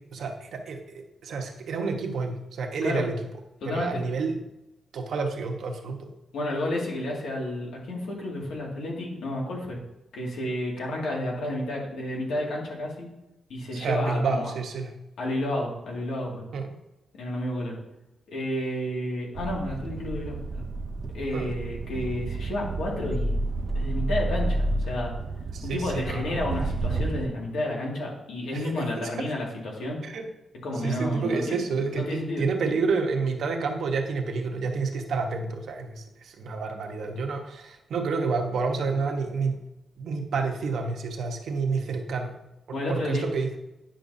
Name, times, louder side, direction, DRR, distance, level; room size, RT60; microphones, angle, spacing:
voice 1, 0.0-3.2 3.6-4.4 4.9-6.1 13.7-14.9 16.5-16.8 21.3-21.5 25.5-26.4 28.5-29.2 30.0-30.3 30.8-39.6 40.0-42.3 42.7-43.6, right 4 dB, 70° right, 3 dB, 1.0 m, -29 dB
voice 2, 3.6-4.0 6.3-9.8 10.1-13.1 13.5-14.5 15.2-16.4 17.1-17.8 18.3-20.6 21.1-23.4 23.7-25.1 25.6-30.0 30.6-32.4 42.7-43.3, left 1 dB, 90° left, -2 dB, 2.0 m, -31 dB
sound 1, 19.3-27.3, right 2 dB, 50° right, 0.5 m, -30 dB
10.0 x 5.9 x 2.7 m, 0.94 s
wide cardioid pair, 145°, 0 cm